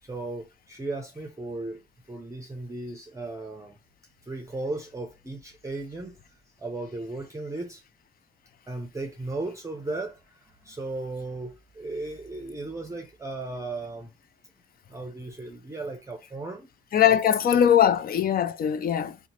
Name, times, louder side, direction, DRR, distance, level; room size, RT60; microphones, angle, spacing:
voice 1, 0.0-1.8 2.1-3.8 4.2-7.8 8.7-14.1 14.9-16.7 17.1-17.2, right 2 dB, 15° right, 0.6 m, -36 dB
voice 2, 16.9-19.2, left 9 dB, 50° left, 0.4 m, -21 dB
2.8 x 2.2 x 4.1 m
cardioid pair, 90°, 20 cm